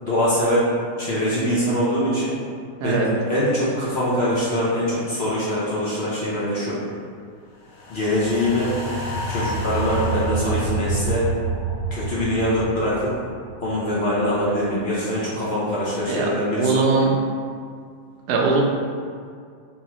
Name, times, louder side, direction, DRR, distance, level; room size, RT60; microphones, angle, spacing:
voice 1, 0.0-0.7 1.0-2.4 2.8-6.8 7.9-8.7 9.3-11.3 11.9-13.1 13.6-16.9, equal, 55° left, -8 dB, 0.7 m, -23 dB
sound 1, 7.7-14.1 14.5-14.6, right 3 dB, 75° left, 1.2 m, -28 dB
voice 2, 16.5-17.2 18.3-18.6, right 4 dB, 75° right, -1 dB, 1.1 m, -20 dB
3.5 x 3.1 x 3.0 m, 2.2 s
omnidirectional pair, 1.9 m